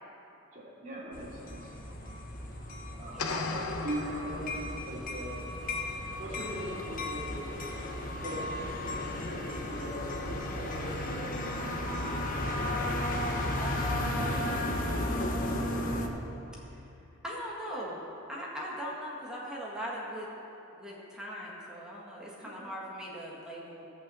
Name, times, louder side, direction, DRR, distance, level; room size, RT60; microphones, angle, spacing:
voice 1, 0.5-1.8 2.9-3.4 3.8-5.5 6.2-7.6 8.2-9.0 9.2-10.1 10.5-11.7 22.4-22.7, right 1 dB, 35° right, -6 dB, 2.9 m, -41 dB
sound 1, 1.1-16.1, left 1 dB, 40° left, 1.0 m, -34 dB
voice 2, 3.1-4.1 13.6-15.6 16.5-16.6 17.2-18.0 18.3-20.3 20.7-23.9, equal, 5° right, -5 dB, 1.7 m, -40 dB
sound 2, 3.2-5.1, left 3 dB, 85° left, 0.8 m, -36 dB
15.5 x 5.9 x 7.6 m, 2.9 s
head